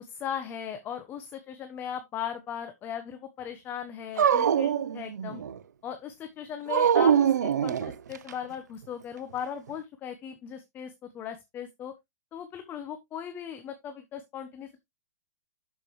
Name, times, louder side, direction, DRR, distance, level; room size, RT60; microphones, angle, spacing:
voice 1, 0.0-5.4 5.8-11.9 12.3-14.8, left 8 dB, 20° left, 1.0 m, -38 dB
Dog, 4.2-5.6 6.7-8.3, right 8 dB, 80° right, 0.7 m, -23 dB
12.0 x 5.2 x 3.1 m
hypercardioid pair, 145°, 9 cm